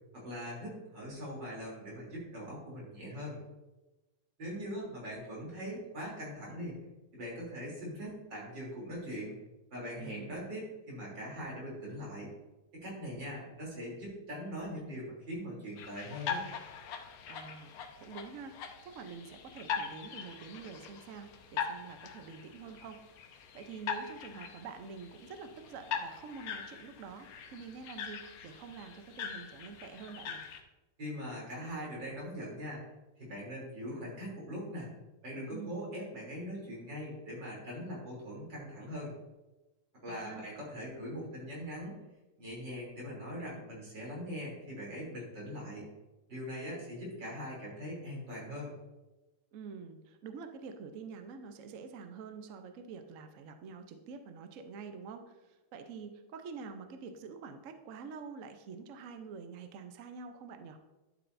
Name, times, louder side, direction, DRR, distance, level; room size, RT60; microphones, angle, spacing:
voice 1, 0.1-3.4 4.4-6.8 7.1-9.4 9.7-12.3 12.7-16.5 31.0-32.8 33.2-34.9 35.2-39.2 40.0-42.0 42.4-45.8 46.3-48.7, equal, 55° right, -4 dB, 3.9 m, -41 dB
voice 2, 10.0-10.5 17.3-18.6 18.8-23.0 23.5-30.4 35.5-36.0 40.1-40.4 49.5-60.8, right 5 dB, 80° right, 7 dB, 0.7 m, -47 dB
sound 1, 15.8-30.6, left 7 dB, 85° left, 1.7 m, -42 dB
11.0 x 8.2 x 2.6 m, 1.0 s
omnidirectional pair, 2.4 m